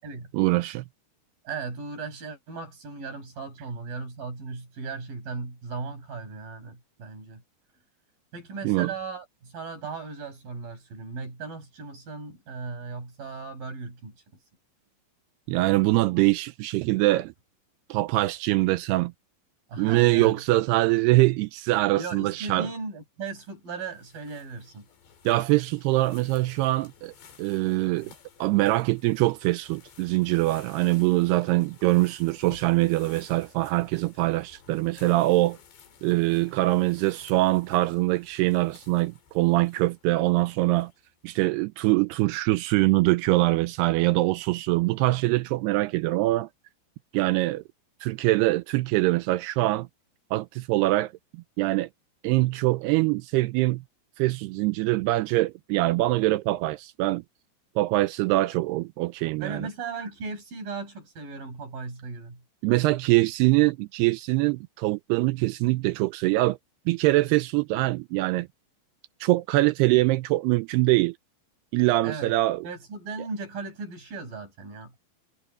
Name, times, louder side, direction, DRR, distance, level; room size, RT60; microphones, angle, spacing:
voice 1, 0.3-0.9 8.6-8.9 15.5-17.3 17.9-19.1 19.8-22.7 25.3-28.1 28.4-35.6 36.0-40.9 41.2-46.5 47.1-47.6 48.0-49.9 50.3-51.9 52.2-53.8 54.2-57.2 57.8-59.7 62.6-66.6 66.9-68.5 69.2-71.2 71.7-72.7, right 19 dB, 85° right, 2.3 m, -23 dB
voice 2, 1.4-7.4 8.3-14.1 19.7-20.4 21.9-24.9 59.4-62.4 72.0-72.3 72.6-74.9, right 4 dB, 50° right, 8.3 m, -37 dB
sound 1, 23.4-41.2, left 7 dB, 70° left, 5.7 m, -54 dB
omnidirectional pair, 5.2 m